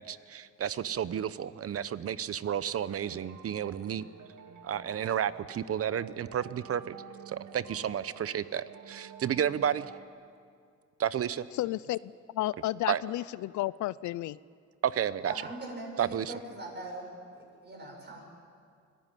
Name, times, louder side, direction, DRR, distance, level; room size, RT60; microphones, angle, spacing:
voice 1, 0.0-4.0 4.6-7.0 7.3-9.9 11.0-11.5 12.9-13.0 14.8-15.3 16.0-16.3, right 9 dB, 50° right, 16 dB, 0.8 m, -31 dB
sound 1, 2.7-10.1, right 7 dB, 80° right, 2.1 m, -50 dB
voice 2, 11.5-12.0 12.3-14.4, left 16 dB, 75° left, 20 dB, 0.5 m, -32 dB
voice 3, 15.2-17.1 17.3-18.2, right 2 dB, 35° right, 0 dB, 7.2 m, -41 dB
25.0 x 15.0 x 9.2 m, 2.2 s
cardioid pair, 90°, 30 cm